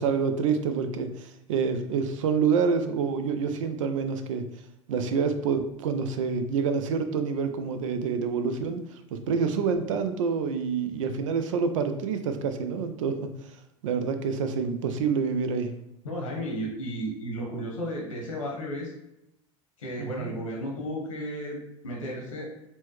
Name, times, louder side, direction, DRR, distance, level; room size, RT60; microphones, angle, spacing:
voice 1, 0.0-4.4 4.9-13.3 13.8-15.7 20.0-20.3, right 5 dB, 80° right, 8 dB, 0.5 m, -27 dB
voice 2, 16.0-18.9 19.8-21.6 21.8-22.5, equal, 90° left, -1 dB, 1.2 m, -33 dB
4.3 x 2.2 x 3.0 m, 0.83 s
hypercardioid pair, 85°, 16 cm